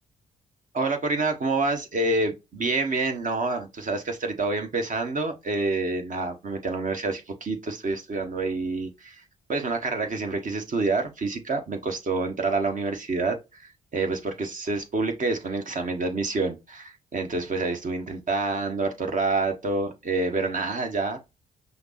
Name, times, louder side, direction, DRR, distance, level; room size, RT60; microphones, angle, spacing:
voice 1, 0.7-9.2 9.5-21.2, right 3 dB, 45° right, 1.3 m, -27 dB
5.7 x 2.0 x 4.2 m
hypercardioid pair, 45°, 19 cm